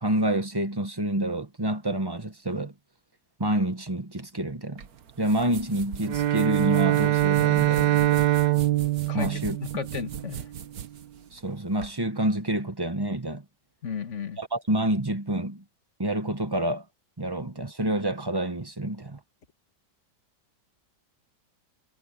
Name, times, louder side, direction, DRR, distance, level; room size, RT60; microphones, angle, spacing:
voice 1, 0.0-2.7 3.4-4.9 5.2-8.2 9.1-9.6 11.3-13.4 14.4-15.6 16.0-16.8 17.2-19.2, right 1 dB, 15° right, 1.1 m, -28 dB
sound 1, 4.8-11.9, right 8 dB, 60° right, 1.5 m, -41 dB
Bowed string instrument, 6.0-10.4, right 14 dB, 85° right, 1.5 m, -23 dB
voice 2, 9.1-9.4 9.7-10.5 13.8-14.4, left 7 dB, 45° left, 1.7 m, -34 dB
omnidirectional pair, 1.8 m